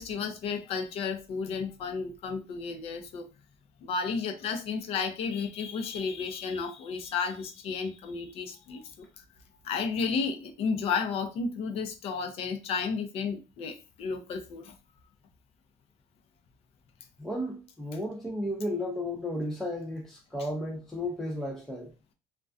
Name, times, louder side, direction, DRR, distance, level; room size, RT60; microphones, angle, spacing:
voice 1, 0.0-3.3 3.8-9.2 9.6-14.7, left 5 dB, 60° left, 0.5 m, -32 dB
voice 2, 17.2-21.9, left 1 dB, 5° left, 0.4 m, -33 dB
2.3 x 2.2 x 2.5 m
cardioid pair, 115°, 11 cm